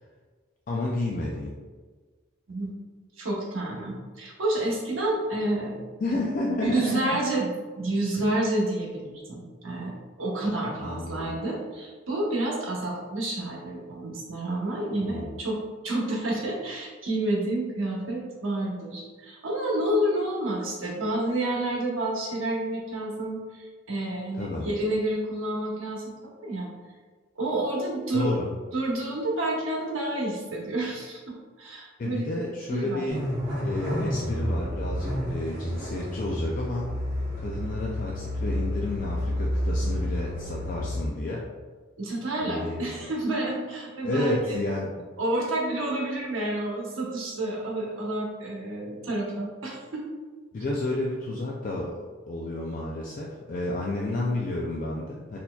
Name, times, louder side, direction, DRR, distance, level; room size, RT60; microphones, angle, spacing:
voice 1, 0.7-1.5 6.0-7.2 10.8-11.4 15.0-15.3 24.4-24.6 28.1-28.5 32.0-33.2 33.6-36.9 37.4-41.5 42.4-42.9 44.0-45.0 50.5-52.0 52.3-55.4, left 2 dB, 40° left, -3 dB, 0.3 m, -31 dB
voice 2, 2.5-2.8 3.2-5.9 6.6-15.6 15.8-26.7 27.4-28.3 28.7-32.3 32.7-33.0 34.6-34.8 42.0-44.5 45.2-50.0, right 1 dB, 80° right, -3 dB, 0.9 m, -29 dB
sound 1, 33.1-41.0, equal, 30° right, 1.5 m, -30 dB
4.2 x 2.7 x 2.3 m, 1.4 s
head